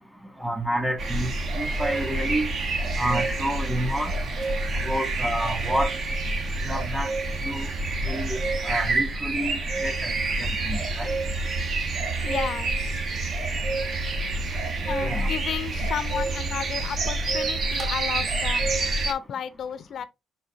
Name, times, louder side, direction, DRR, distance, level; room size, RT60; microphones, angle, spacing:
voice 1, 0.4-2.5 3.0-4.1 4.8-5.9 6.6-7.1 7.4-7.7 8.0-10.1 10.6-11.1 15.0-15.3, equal, 10° right, 1.6 m, -29 dB
sound 1, 1.0-19.1, right 2 dB, 55° right, 1.0 m, -27 dB
voice 2, 4.5-4.8 10.6-10.8 12.2-13.1 14.9-18.7 19.1-20.1, left 8 dB, 65° left, 0.4 m, -33 dB
5.4 x 3.9 x 2.4 m
cardioid pair, 90°, 0 cm